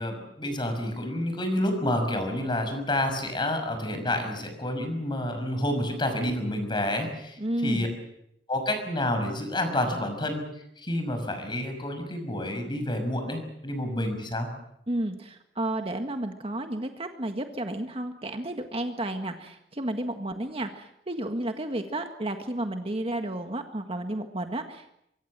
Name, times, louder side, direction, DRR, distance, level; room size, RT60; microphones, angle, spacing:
voice 1, 0.0-7.9 8.5-10.4 10.8-14.5, left 1 dB, 25° left, 7 dB, 5.9 m, -29 dB
voice 2, 7.4-7.9 14.9-24.9, right 1 dB, 35° right, 6 dB, 1.7 m, -32 dB
24.5 x 23.5 x 7.5 m, 0.78 s
head